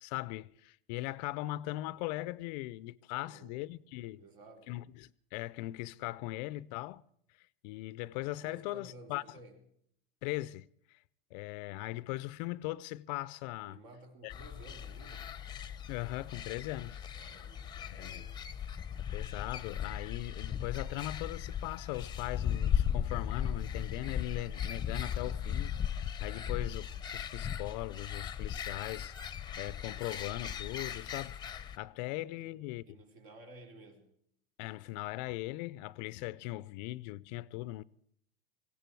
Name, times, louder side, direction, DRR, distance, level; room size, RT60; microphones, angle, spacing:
voice 1, 0.0-4.2 4.7-7.0 7.4-9.2 10.2-11.0 11.3-13.8 14.2-14.3 15.9-17.0 17.8-18.2 19.0-29.1 29.6-31.4 31.8-32.8 34.6-37.8, left 18 dB, 50° left, 0.5 m, -39 dB
voice 2, 3.1-3.7 4.2-4.7 8.4-9.6 13.6-15.4 17.1-18.4 32.0-34.2, right 2 dB, 60° right, 4.4 m, -55 dB
sound 1, 14.3-31.8, left 8 dB, 15° left, 0.8 m, -37 dB
18.5 x 16.5 x 4.6 m
supercardioid pair, 130°, 29 cm